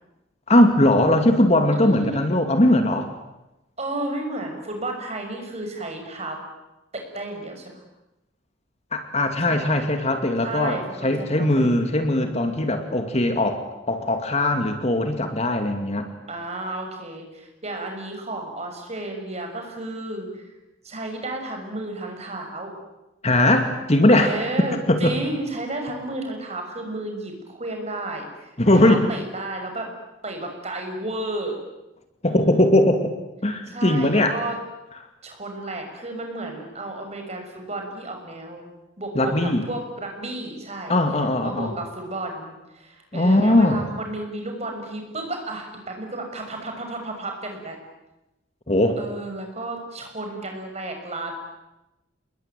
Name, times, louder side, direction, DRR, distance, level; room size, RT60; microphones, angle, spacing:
voice 1, 0.5-3.1 8.9-16.1 23.2-24.3 24.9-25.2 28.6-29.0 32.2-33.1 33.4-34.4 39.1-39.6 40.9-41.7 43.1-43.8 48.7-49.0, left 1 dB, 35° left, 6 dB, 2.4 m, -20 dB
voice 2, 1.7-2.2 3.8-6.4 6.9-7.7 9.5-9.8 10.4-11.7 16.3-20.4 20.8-22.7 24.1-29.9 30.2-31.6 32.3-32.7 33.7-34.6 35.2-38.6 39.0-39.3 39.7-41.0 41.4-47.8 49.0-51.4, right 2 dB, 35° right, 3 dB, 6.4 m, -32 dB
28.5 x 21.5 x 9.2 m, 0.97 s
head